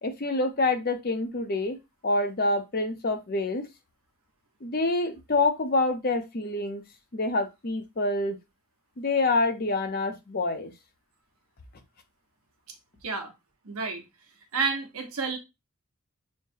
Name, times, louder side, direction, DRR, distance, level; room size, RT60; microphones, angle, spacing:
voice 1, 0.0-1.8 2.0-3.7 4.6-6.8 7.1-8.4 9.0-10.7, left 2 dB, 45° left, 0.6 m, -26 dB
voice 2, 13.6-14.0 14.5-15.4, right 4 dB, 75° right, 1.0 m, -30 dB
6.4 x 2.1 x 2.7 m
head